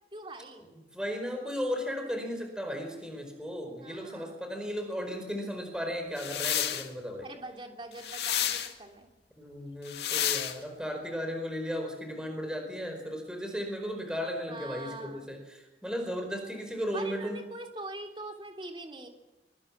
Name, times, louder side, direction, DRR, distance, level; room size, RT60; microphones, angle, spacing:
voice 1, 0.1-0.7 3.8-4.4 7.2-9.1 12.1-12.5 14.5-15.3 16.9-19.1, right 2 dB, 30° right, 3 dB, 3.3 m, -43 dB
voice 2, 0.9-7.3 9.4-17.4, equal, 5° right, 4 dB, 4.8 m, -35 dB
sound 1, 6.2-6.9 8.0-8.7 9.9-10.6, left 10 dB, 75° left, 2.0 m, -30 dB
24.5 x 24.0 x 7.4 m, 0.99 s
head